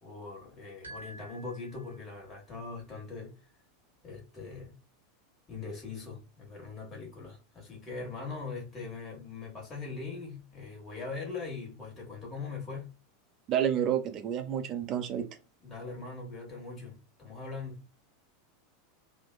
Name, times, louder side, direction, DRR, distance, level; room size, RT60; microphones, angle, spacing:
voice 1, 0.0-3.4 4.0-4.8 5.5-13.0 15.6-17.8, left 4 dB, 25° left, 1.2 m, -41 dB
sound 1, 0.8-2.4, right 1 dB, 75° right, 0.8 m, -49 dB
voice 2, 13.5-15.3, right 9 dB, 35° right, 0.5 m, -29 dB
2.9 x 2.1 x 2.2 m
figure-of-eight pair, 85°, 0 cm